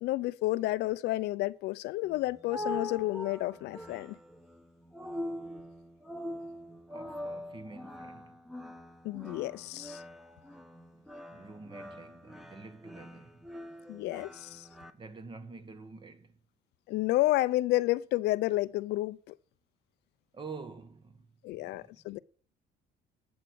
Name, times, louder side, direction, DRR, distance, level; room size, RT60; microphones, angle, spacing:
voice 1, 0.0-4.2 9.0-10.0 13.9-14.7 16.9-19.3 21.4-22.2, left 17 dB, 80° left, 0.6 m, -30 dB
sound 1, 2.0-14.9, left 1 dB, ahead, 1.3 m, -43 dB
voice 2, 6.9-8.4 10.9-13.5 14.9-16.4 20.3-21.3 21.5-22.2, right 4 dB, 30° right, 1.6 m, -48 dB
11.5 x 8.1 x 6.5 m
cardioid pair, 110°, 17 cm